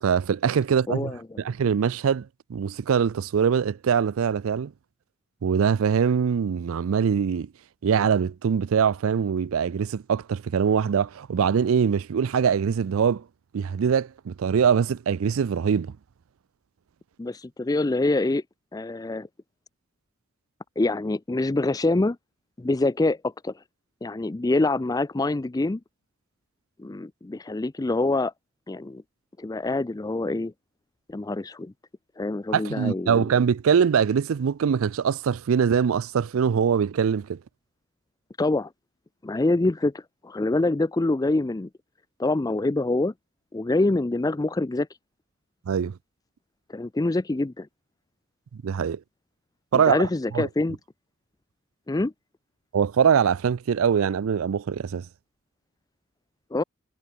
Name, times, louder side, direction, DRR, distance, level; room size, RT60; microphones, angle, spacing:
voice 1, 0.0-1.1 1.4-4.7 5.4-7.5 7.8-13.2 13.5-15.9 32.5-37.4 45.7-45.9 48.6-49.0 49.7-50.1 50.3-50.5 52.7-55.1, right 7 dB, 70° right, 0.4 m, -23 dB
voice 2, 0.9-1.2 17.2-18.4 18.7-19.3 20.8-22.2 22.6-23.5 24.0-25.8 26.8-28.3 28.7-29.0 29.4-30.5 31.1-31.7 32.2-33.3 38.4-38.7 39.2-41.7 42.2-43.1 43.5-44.9 46.7-47.7 49.9-50.8 51.9-52.1 56.5-56.6, left 2 dB, 15° left, 0.4 m, -25 dB
head